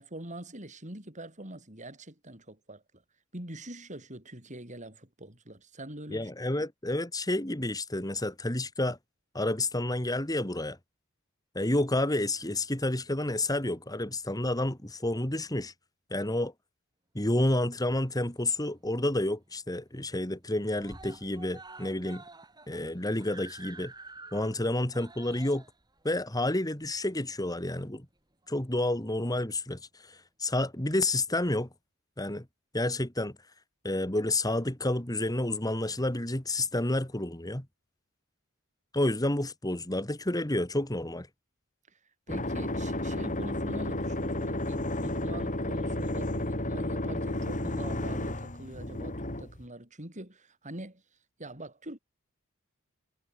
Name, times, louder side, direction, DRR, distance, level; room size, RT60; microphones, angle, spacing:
voice 1, 0.0-2.8 3.3-6.3 41.9-42.0 42.3-51.0 51.4-52.0, right 1 dB, 35° right, 7.5 m, -44 dB
voice 2, 6.1-9.0 9.3-10.8 11.5-15.7 16.1-16.5 17.1-22.2 22.7-23.9 24.3-25.6 26.0-28.1 28.5-31.7 32.2-32.4 32.7-33.3 33.8-37.7 38.9-41.3, left 1 dB, 15° left, 2.6 m, -30 dB
Screaming, 18.0-18.8 19.2-19.3 19.6-19.7 20.0-20.5 20.8-27.6 28.4-28.5, right 3 dB, 20° right, 6.3 m, -50 dB
sound 1, 42.3-49.6, left 1 dB, 35° left, 4.9 m, -32 dB
head